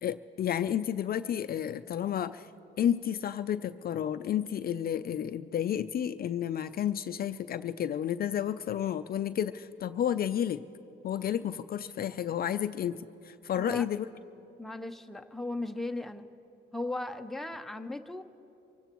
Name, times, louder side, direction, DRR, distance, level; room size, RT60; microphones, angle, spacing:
voice 1, 0.0-2.5 2.8-10.6 11.0-14.1, left 10 dB, 50° left, 11 dB, 0.4 m, -31 dB
voice 2, 14.6-16.3 16.7-18.2, left 2 dB, ahead, 7 dB, 0.6 m, -37 dB
25.0 x 17.0 x 3.0 m, 2.8 s
cardioid pair, 90°, 20 cm